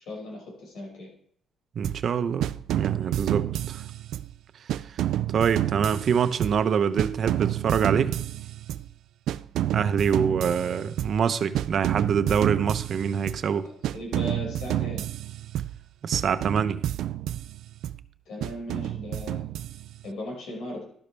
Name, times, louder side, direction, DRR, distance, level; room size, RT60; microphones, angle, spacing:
voice 1, 0.1-1.1 3.1-3.2 13.9-15.0 18.3-19.5 20.0-20.8, left 1 dB, 80° left, 5.6 m, -37 dB
voice 2, 1.7-2.5 2.7-3.8 4.9-5.0 5.3-8.2 9.7-13.7 16.0-16.8, right 7 dB, 60° right, 0.8 m, -25 dB
sound 1, 1.8-2.1 2.4-4.4 4.7-6.7 7.0-8.9 9.3-11.3 11.5-13.5 13.8-15.8 16.1-18.0 18.4-20.1, right 12 dB, 80° right, 0.3 m, -30 dB
12.5 x 12.0 x 3.3 m
cardioid pair, 90°, 0 cm